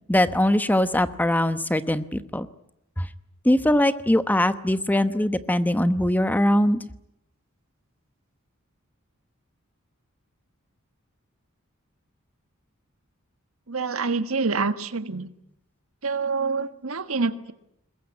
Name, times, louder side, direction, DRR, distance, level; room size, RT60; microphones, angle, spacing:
voice 1, 0.1-2.5 3.0-3.1 3.4-6.9, left 1 dB, 10° left, 12 dB, 1.0 m, -21 dB
voice 2, 13.7-15.3 16.0-17.5, right 4 dB, 85° right, 11 dB, 1.5 m, -26 dB
21.5 x 21.5 x 9.7 m, 0.79 s
head